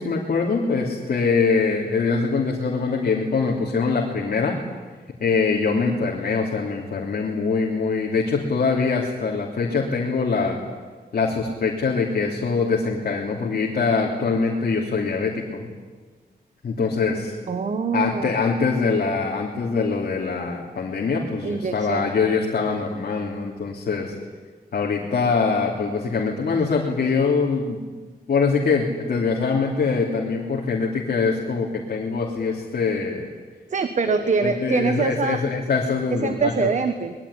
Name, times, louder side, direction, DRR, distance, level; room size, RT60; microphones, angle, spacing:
voice 1, 0.0-4.6 5.2-10.6 11.1-15.7 16.6-17.3 17.9-24.1 24.7-27.8 28.3-33.3 34.1-36.7, left 4 dB, 60° left, -1 dB, 3.2 m, -23 dB
voice 2, 17.5-18.3 21.4-22.1 33.7-35.4 36.1-37.1, right 5 dB, 45° right, 9 dB, 1.3 m, -24 dB
25.0 x 21.5 x 10.0 m, 1.4 s
wide cardioid pair, 155°, 17 cm